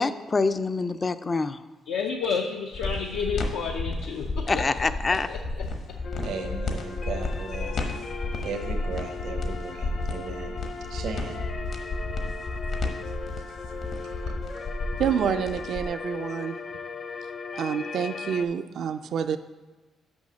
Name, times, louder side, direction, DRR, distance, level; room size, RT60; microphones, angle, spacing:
voice 1, 0.0-1.6 4.5-5.3, left 3 dB, 30° left, 0.3 m, -25 dB
voice 2, 1.9-4.7 5.1-5.7, left 5 dB, 90° left, 0.5 m, -31 dB
sound 1, 2.7-15.8, left 3 dB, 65° left, 1.1 m, -31 dB
sound 2, 6.0-18.4, left 4 dB, 50° left, 0.7 m, -38 dB
voice 3, 6.2-8.1 8.4-10.6 10.9-11.4 13.5-13.6 14.0-14.3, right 5 dB, 80° right, 0.8 m, -37 dB
voice 4, 15.0-16.5 17.6-19.4, right 8 dB, 65° right, 0.3 m, -27 dB
6.2 x 5.6 x 6.2 m
cardioid pair, 90°, 0 cm